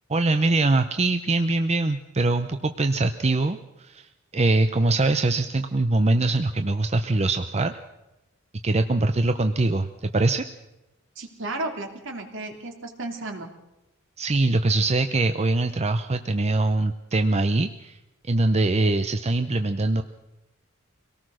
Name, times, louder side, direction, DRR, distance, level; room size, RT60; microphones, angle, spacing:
voice 1, 0.1-7.8 8.6-10.4 14.2-18.0 18.2-20.0, right 2 dB, 30° right, 8 dB, 0.7 m, -23 dB
voice 2, 11.2-13.5, right 2 dB, 65° right, 3 dB, 3.0 m, -33 dB
24.0 x 18.5 x 6.4 m, 0.98 s
head